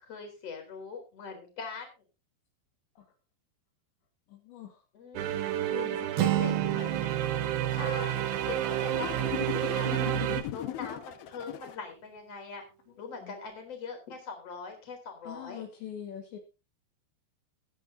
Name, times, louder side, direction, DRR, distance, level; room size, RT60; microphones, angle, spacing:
voice 1, 0.0-1.9 4.9-5.5 6.2-7.1 7.7-10.2 10.5-12.6 13.0-15.6, left 5 dB, 30° left, 4 dB, 4.6 m, -42 dB
voice 2, 4.3-4.8 5.6-7.0 13.1-13.4 15.3-16.4, left 10 dB, 70° left, 3 dB, 3.7 m, -43 dB
Emotional Piano Background Music, 5.2-10.4, right 12 dB, 70° right, 2.7 m, -30 dB
Acoustic guitar, 6.1-10.1, right 15 dB, 90° right, 2.1 m, -33 dB
sound 1, 6.5-11.8, left 13 dB, 90° left, 2.1 m, -40 dB
21.5 x 9.9 x 2.7 m, 0.29 s
omnidirectional pair, 5.7 m